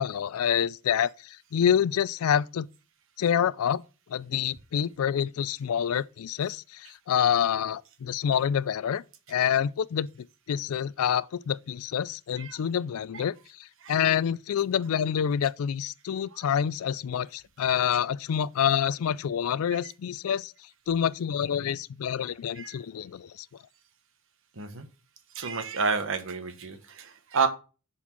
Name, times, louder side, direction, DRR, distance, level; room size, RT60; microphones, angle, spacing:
voice 1, 0.0-2.7 3.2-3.8 4.1-9.0 9.3-13.3 13.9-20.5 20.9-23.5, left 8 dB, 75° left, 0.4 m, -27 dB
voice 2, 24.6-24.9 25.3-27.5, right 5 dB, 65° right, 1.2 m, -29 dB
7.1 x 4.3 x 5.9 m
head